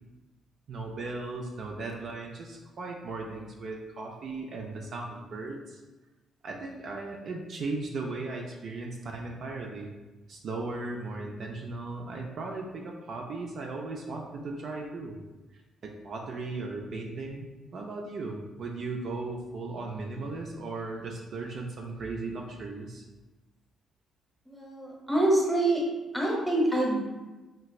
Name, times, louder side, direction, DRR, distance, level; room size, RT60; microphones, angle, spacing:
voice 1, 0.7-5.8 6.4-9.9 10.3-15.2 15.8-17.5 17.7-23.0, right 3 dB, 60° right, 0 dB, 0.4 m, -37 dB
voice 2, 24.5-25.8 26.1-27.0, right 1 dB, 5° right, -3 dB, 1.1 m, -25 dB
3.3 x 2.9 x 2.3 m, 1.1 s
cardioid pair, 90°, 0 cm